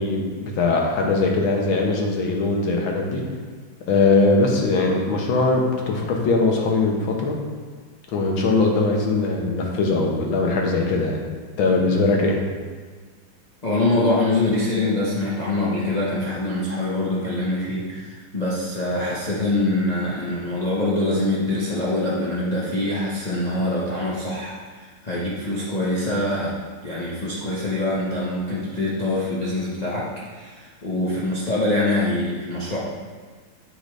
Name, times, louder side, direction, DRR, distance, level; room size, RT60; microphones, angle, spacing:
voice 1, 0.0-3.2 3.9-7.4 8.1-11.2 11.6-12.4, left 3 dB, 70° left, 0 dB, 1.6 m, -21 dB
voice 2, 13.6-26.5 26.8-32.8, left 2 dB, 55° left, -7 dB, 0.4 m, -24 dB
7.9 x 4.9 x 3.2 m, 1.5 s
omnidirectional pair, 2.4 m